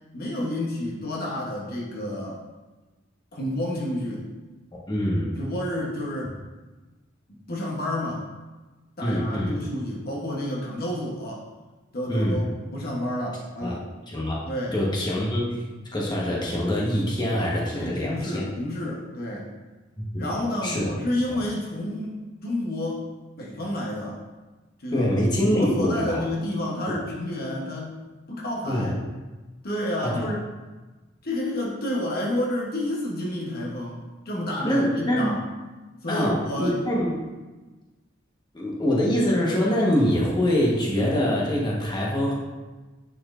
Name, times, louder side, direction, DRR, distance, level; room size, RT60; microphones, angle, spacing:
voice 1, 0.1-2.4 3.3-4.3 5.4-6.3 7.5-8.2 9.0-11.5 11.9-13.8 14.4-14.8 17.7-19.5 20.2-23.1 23.4-24.2 24.8-25.1 25.4-28.0 28.3-28.9 29.6-30.4 31.2-34.0 34.2-35.4 36.0-36.8, left 1 dB, 50° left, -3 dB, 0.9 m, -30 dB
voice 2, 4.9-5.4 9.0-9.6 12.1-12.4 13.6-13.8 14.1-14.5 14.7-15.6 15.9-18.4 20.0-20.3 20.6-20.9 21.3-21.4 24.9-26.2 26.9-27.0 28.7-29.0 30.0-30.2 34.6-35.4 36.1-37.2 38.5-42.3, equal, 20° left, -4 dB, 1.1 m, -24 dB
9.3 x 4.3 x 2.5 m, 1.2 s
head